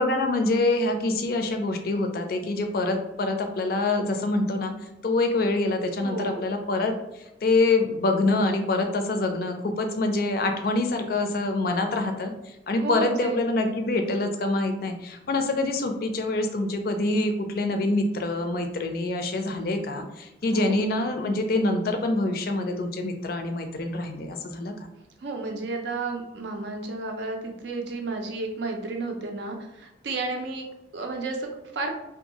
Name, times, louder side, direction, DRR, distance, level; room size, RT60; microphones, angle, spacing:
voice 1, 0.0-4.7 5.0-24.9, left 2 dB, 55° left, 5 dB, 0.4 m, -25 dB
voice 2, 6.0-6.4 12.8-13.4 20.4-20.8 25.2-30.7 30.9-31.9, right 3 dB, 70° right, 3 dB, 0.5 m, -32 dB
2.6 x 2.2 x 2.8 m, 0.90 s
head